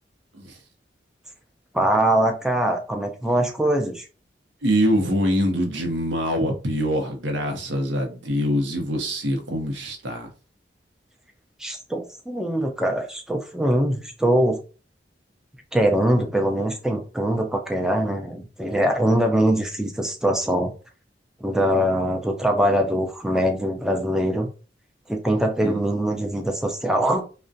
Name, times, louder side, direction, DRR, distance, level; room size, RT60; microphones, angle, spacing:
voice 1, 1.7-4.0 11.6-14.6 15.7-20.7 21.4-24.5 25.1-27.2, right 1 dB, 5° right, 3 dB, 0.3 m, -22 dB
voice 2, 4.6-10.3 25.6-25.8, equal, 85° right, 4 dB, 0.7 m, -24 dB
2.4 x 2.1 x 2.6 m, 0.35 s
head